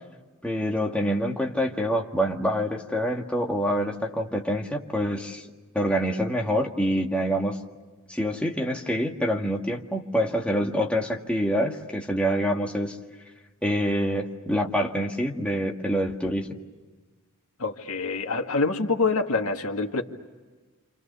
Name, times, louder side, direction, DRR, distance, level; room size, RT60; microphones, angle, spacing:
voice 1, 0.4-5.4 5.7-7.6 8.1-13.0 13.6-16.5, equal, 5° left, 0 dB, 1.9 m, -26 dB
voice 2, 17.6-20.0, left 3 dB, 80° left, 4 dB, 2.0 m, -26 dB
28.5 x 28.0 x 6.9 m, 1.3 s
head